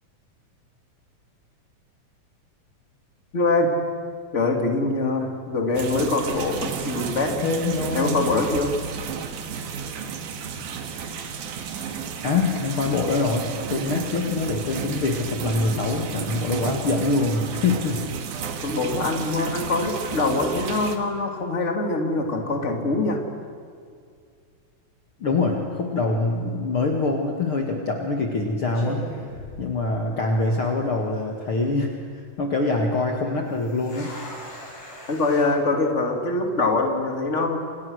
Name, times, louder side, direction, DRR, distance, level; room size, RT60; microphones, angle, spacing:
voice 1, 3.3-3.8 4.3-7.4 7.9-8.7 18.6-23.2 35.1-37.6, left 2 dB, 25° left, 3 dB, 2.9 m, -23 dB
sound 1, 5.7-21.0, right 6 dB, 75° right, 3.2 m, -33 dB
voice 2, 7.4-8.2 12.2-18.1 25.2-29.0 29.6-31.9 32.4-34.1, left 3 dB, 45° left, 1 dB, 2.6 m, -24 dB
sound 2, 27.3-27.5 28.2-28.4 28.7-30.3 30.6-30.7 31.3-31.7 33.4-35.5, left 1 dB, 75° left, 8.8 m, -40 dB
28.5 x 28.0 x 6.6 m, 2.2 s
omnidirectional pair, 3.6 m